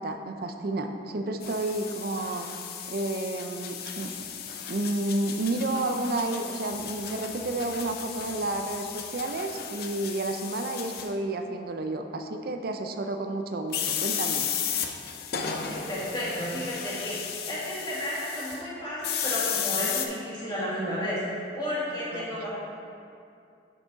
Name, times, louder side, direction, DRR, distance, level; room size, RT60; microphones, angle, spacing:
voice 1, 0.0-2.5 2.9-4.1 4.7-14.5 22.1-22.3, right 2 dB, 55° right, 6 dB, 0.4 m, -31 dB
sound 1, 1.4-11.1 13.7-18.6 19.0-20.1, left 8 dB, 55° left, 0.5 m, -34 dB
voice 2, 15.6-22.5, equal, 25° left, -7 dB, 1.7 m, -32 dB
6.2 x 6.1 x 3.9 m, 2.4 s
head